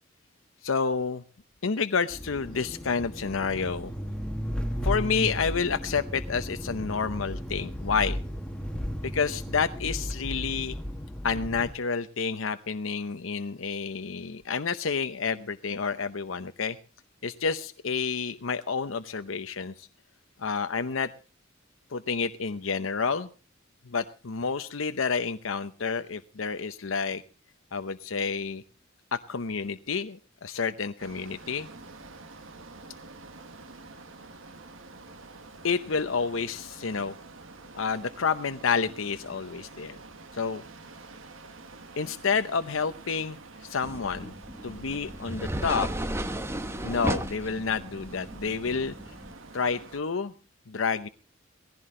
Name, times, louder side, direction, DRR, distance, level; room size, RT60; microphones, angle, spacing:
voice 1, 0.6-1.2 1.6-3.9 4.8-8.2 9.0-10.8 11.2-16.8 17.2-19.9 20.4-21.1 21.9-23.3 23.9-27.2 27.7-28.6 29.1-31.7 35.6-37.1 37.7-40.0 40.3-40.6 42.0-44.3 44.6-45.9 46.8-48.9 49.5-50.3 50.7-51.1, left 5 dB, 90° left, 10 dB, 0.8 m, -29 dB
sound 1, 2.1-11.7, equal, 5° left, 1.3 m, -34 dB
sound 2, 31.0-50.0, right 3 dB, 85° right, 1.4 m, -48 dB
sound 3, 43.8-49.3, right 1 dB, 15° right, 1.0 m, -35 dB
18.5 x 15.5 x 3.7 m, 0.37 s
head